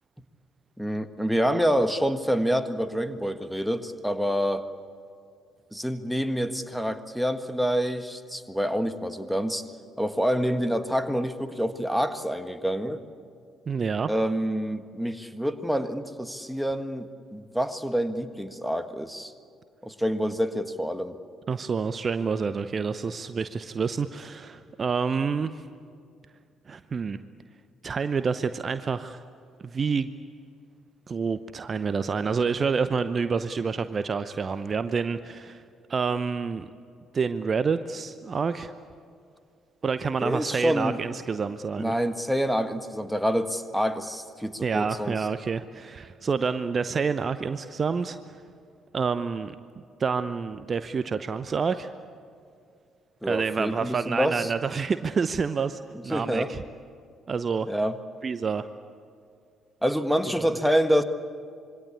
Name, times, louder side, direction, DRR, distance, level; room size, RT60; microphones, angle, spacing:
voice 1, 0.8-4.7 5.7-9.6 10.0-13.0 14.1-19.3 19.8-21.1 40.2-41.0 41.8-45.1 53.2-54.5 55.9-56.5 57.7-58.0 59.8-61.0, equal, ahead, 10 dB, 1.7 m, -27 dB
voice 2, 13.7-14.1 21.5-25.5 26.7-27.2 27.8-29.2 29.6-30.1 31.1-35.6 35.9-36.7 37.1-38.7 39.8-41.9 44.6-48.2 48.9-49.6 50.0-51.9 53.2-56.6 57.3-57.7 58.2-58.7, right 5 dB, 35° right, 12 dB, 0.8 m, -28 dB
26.5 x 22.5 x 8.6 m, 2.4 s
figure-of-eight pair, 45°, 0 cm